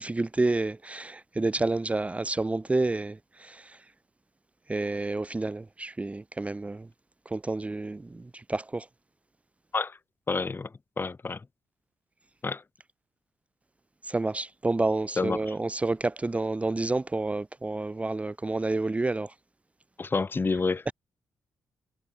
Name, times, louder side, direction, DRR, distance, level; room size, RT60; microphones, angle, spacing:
voice 1, 0.0-3.8 4.7-6.9 7.3-8.9 14.0-19.3 20.9-21.0, right 2 dB, 20° right, 0.9 m, -29 dB
voice 2, 10.3-10.7 11.0-11.4 12.4-12.6 15.2-15.5 20.0-20.8, left 4 dB, 30° left, 3.1 m, -28 dB
cardioid pair, 75°, 7 cm